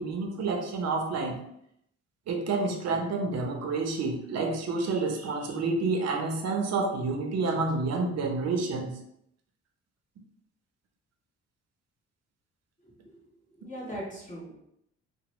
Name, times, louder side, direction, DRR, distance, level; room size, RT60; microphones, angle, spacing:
voice 1, 0.0-1.4 2.3-8.9, right 3 dB, 60° right, 2 dB, 0.7 m, -29 dB
voice 2, 12.8-13.2 13.5-14.7, equal, 25° left, -7 dB, 1.3 m, -41 dB
2.9 x 2.1 x 2.9 m, 0.76 s
cardioid pair, 90°, 30 cm